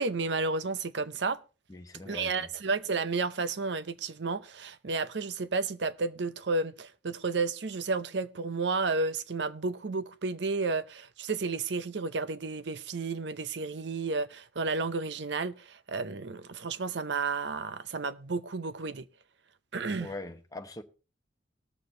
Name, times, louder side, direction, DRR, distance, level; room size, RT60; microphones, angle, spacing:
voice 1, 0.0-1.4 2.1-19.0 19.7-20.1, right 3 dB, 70° right, 0.7 m, -32 dB
voice 2, 1.7-2.5 20.0-20.8, left 2 dB, 20° left, 0.9 m, -42 dB
19.0 x 6.7 x 3.8 m
head